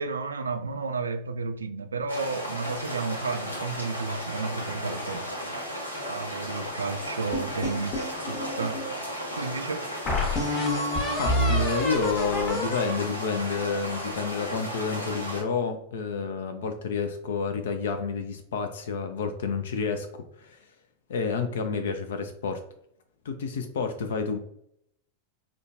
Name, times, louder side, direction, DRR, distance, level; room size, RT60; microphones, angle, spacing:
voice 1, 0.0-5.6 6.1-8.8 9.4-9.8 11.3-11.4, right 4 dB, 75° right, 0.3 m, -32 dB
sound 1, 2.1-15.4, equal, 80° left, 0.8 m, -35 dB
sound 2, 7.3-8.9 9.4-9.5 10.1-14.2, left 1 dB, 30° left, 1.1 m, -28 dB
voice 2, 11.2-20.1 20.4-20.6 21.1-22.6 23.2-24.4, left 5 dB, 60° left, 0.4 m, -29 dB
5.0 x 2.2 x 2.5 m
figure-of-eight pair, 90°, 0 cm